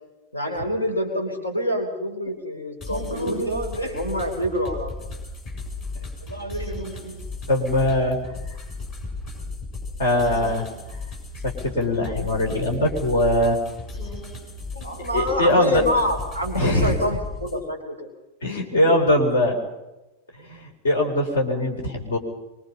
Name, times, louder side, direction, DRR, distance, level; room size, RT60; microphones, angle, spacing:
voice 1, 0.3-5.0 6.2-7.2 14.7-18.1 19.0-19.1, equal, 80° left, 3 dB, 4.3 m, -27 dB
sound 1, 2.8-17.6, left 3 dB, 35° left, 7.8 m, -35 dB
voice 2, 7.5-8.2 10.0-10.7 11.4-13.6 15.1-15.8 16.5-16.9 18.4-19.6 20.3-22.2, left 1 dB, 65° left, 3 dB, 4.3 m, -21 dB
24.5 x 24.0 x 5.6 m, 1.0 s
figure-of-eight pair, 90°, 0 cm